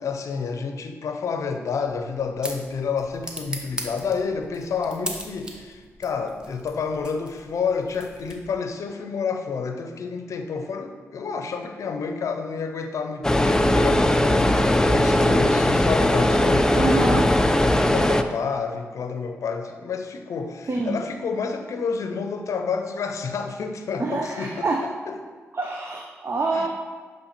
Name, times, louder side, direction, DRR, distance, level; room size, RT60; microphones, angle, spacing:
voice 1, 0.0-17.2 17.6-25.2 26.5-26.7, left 5 dB, 75° left, 6 dB, 0.6 m, -29 dB
sound 1, 1.8-8.7, equal, 15° right, 1.0 m, -39 dB
sound 2, 13.2-18.2, left 1 dB, 10° left, 0.4 m, -19 dB
voice 2, 16.7-17.3 20.7-21.0 24.0-24.8 25.5-26.7, right 3 dB, 45° right, 1 dB, 0.6 m, -26 dB
7.2 x 3.2 x 4.2 m, 1.5 s
cardioid pair, 50°, 5 cm